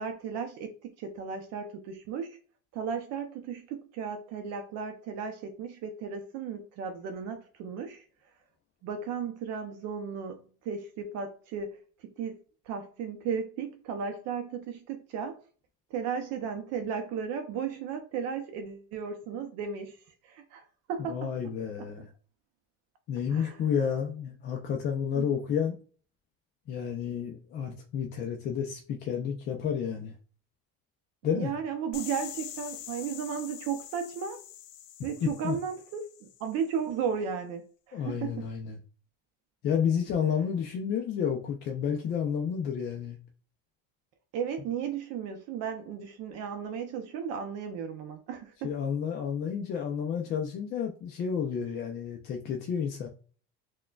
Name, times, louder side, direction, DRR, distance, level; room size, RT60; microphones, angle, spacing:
voice 1, 0.0-2.4 2.7-8.0 8.8-12.4 12.6-15.4 15.9-21.3 23.3-23.6 25.1-25.3 31.3-34.4 35.0-38.5 44.3-48.7, right 7 dB, 55° right, 0.5 m, -35 dB
voice 2, 21.1-22.1 23.1-25.8 26.7-30.1 31.2-31.5 35.2-35.6 37.9-38.8 39.6-43.2 48.6-53.1, left 7 dB, 35° left, 0.4 m, -31 dB
sound 1, 31.9-36.7, left 11 dB, 85° left, 0.6 m, -44 dB
6.0 x 2.2 x 2.3 m
cardioid pair, 155°, 32 cm